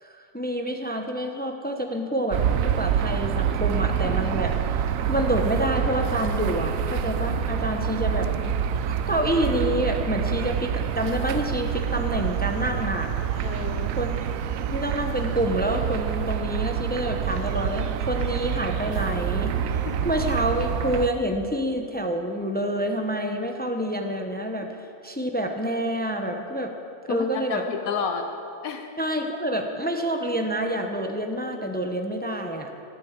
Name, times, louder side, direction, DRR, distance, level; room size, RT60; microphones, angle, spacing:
voice 1, 0.0-8.3 9.1-13.1 14.0-14.1 14.7-24.7 25.0-26.7 27.1-27.6 29.0-32.7, equal, 10° left, 4 dB, 0.6 m, -27 dB
sound 1, 2.3-21.1, right 8 dB, 70° right, 1.0 m, -27 dB
voice 2, 13.4-14.0 19.9-20.0 27.1-28.3 28.6-28.9, left 6 dB, 75° left, 5 dB, 1.2 m, -31 dB
15.0 x 8.8 x 7.2 m, 2.7 s
omnidirectional pair, 1.5 m